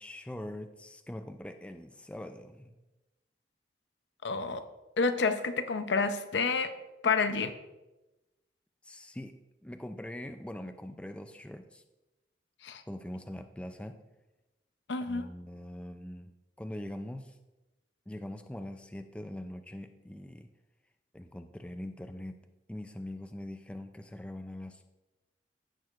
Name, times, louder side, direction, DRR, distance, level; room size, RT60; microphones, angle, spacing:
voice 1, 0.0-2.7 8.8-11.8 12.9-14.0 15.1-16.3 16.6-17.4 18.1-20.5 21.1-22.4 22.7-24.9, left 1 dB, 5° left, 7 dB, 0.3 m, -42 dB
voice 2, 4.2-4.6 5.0-6.7 7.0-7.6 12.6-12.8 14.9-15.3, left 4 dB, 80° left, 9 dB, 0.6 m, -29 dB
15.5 x 6.4 x 2.4 m, 1.0 s
head